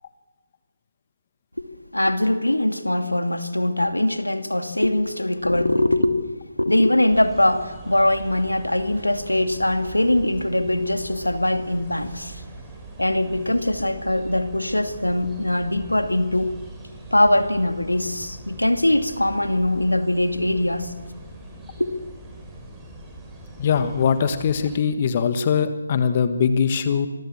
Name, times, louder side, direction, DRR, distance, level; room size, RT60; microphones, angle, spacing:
voice 1, 1.9-6.2 6.6-12.4 13.0-16.6 17.1-20.9 21.8-21.9, left 1 dB, 90° left, 8 dB, 2.4 m, -22 dB
sound 1, 7.1-24.8, right 2 dB, 10° right, 5.6 m, -41 dB
voice 2, 23.6-27.1, left 6 dB, 35° left, 10 dB, 1.5 m, -21 dB
26.0 x 22.0 x 7.4 m, 1.3 s
figure-of-eight pair, 145°, 0 cm